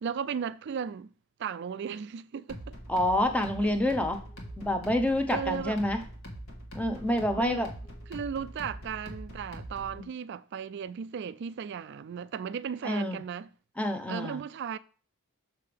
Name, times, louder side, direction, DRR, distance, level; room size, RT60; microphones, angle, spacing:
voice 1, 0.0-1.1 1.4-2.8 5.3-5.8 7.3-7.6 8.1-13.5 14.1-14.8, right 7 dB, 50° right, 0.3 m, -35 dB
sound 1, 2.5-10.0, equal, 65° left, 1.5 m, -43 dB
voice 2, 2.9-4.2 4.6-6.0 6.7-7.7 9.9-10.1 12.8-13.2 13.8-14.4, left 1 dB, 5° left, 0.6 m, -27 dB
6.7 x 5.5 x 3.4 m
head